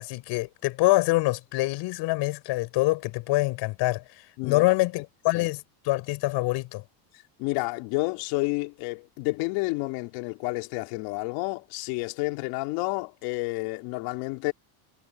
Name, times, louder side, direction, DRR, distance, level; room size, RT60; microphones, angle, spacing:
voice 1, 0.0-6.8, left 20 dB, 60° left, 4.9 m, -25 dB
voice 2, 7.4-14.5, left 24 dB, 75° left, 3.2 m, -30 dB
cardioid pair, 150°, 48 cm